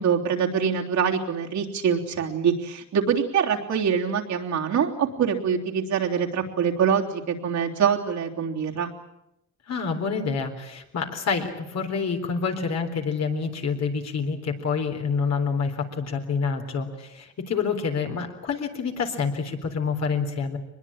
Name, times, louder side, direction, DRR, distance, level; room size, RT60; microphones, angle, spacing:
voice 1, 0.0-8.9, right 7 dB, 70° right, 0 dB, 3.4 m, -24 dB
voice 2, 9.7-20.6, left 5 dB, 60° left, 4 dB, 3.9 m, -27 dB
23.5 x 21.0 x 8.7 m, 0.86 s
cardioid pair, 90°, 30 cm